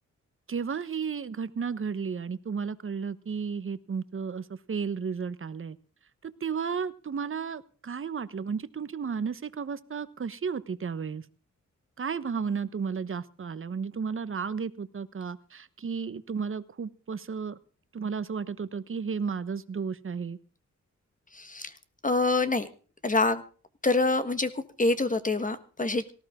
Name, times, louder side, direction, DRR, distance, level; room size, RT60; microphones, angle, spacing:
voice 1, 0.5-5.8 6.2-11.2 12.0-17.6 17.9-20.4, right 6 dB, 45° right, 14 dB, 1.1 m, -33 dB
voice 2, 21.3-21.7 22.0-22.7 23.0-23.4 23.8-26.1, left 3 dB, 25° left, 11 dB, 1.5 m, -26 dB
18.5 x 14.5 x 3.7 m, 0.38 s
cardioid pair, 95°, 29 cm